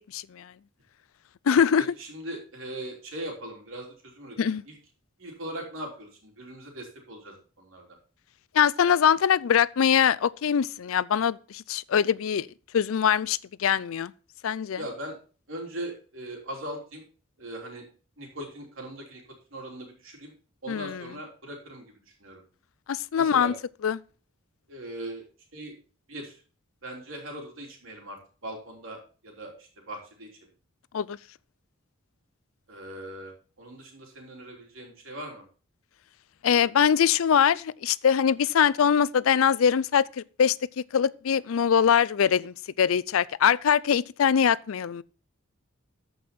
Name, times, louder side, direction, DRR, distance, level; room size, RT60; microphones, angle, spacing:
voice 1, 0.1-0.5 1.5-1.9 4.4-4.6 8.5-12.5 12.7-14.1 14.4-14.8 20.7-21.1 22.9-23.5 23.8-24.0 30.9-31.2 36.4-40.6 40.9-45.0, left 8 dB, 75° left, 0.4 m, -23 dB
voice 2, 2.0-4.8 5.2-7.8 14.8-15.1 15.5-17.0 17.4-17.8 18.2-19.2 19.5-20.3 20.6-22.4 23.2-23.5 24.7-25.2 25.5-25.7 26.1-26.4 26.8-30.3 32.7-35.4, right 1 dB, 70° right, 3.4 m, -40 dB
14.0 x 5.5 x 4.3 m
head